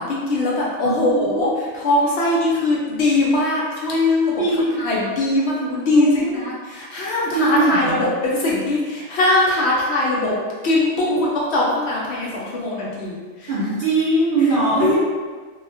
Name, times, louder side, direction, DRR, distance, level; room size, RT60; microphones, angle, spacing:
voice 1, 0.0-4.3 4.8-10.3 10.6-13.6 14.4-14.5 14.8-14.9, left 2 dB, 65° left, -4 dB, 0.7 m, -21 dB
voice 2, 0.8-1.5 4.4-4.6 5.9-6.4 7.3-8.0 10.9-11.2 13.5-14.9, right 2 dB, 60° right, -9 dB, 0.7 m, -21 dB
2.8 x 2.3 x 2.5 m, 1.4 s
omnidirectional pair, 1.4 m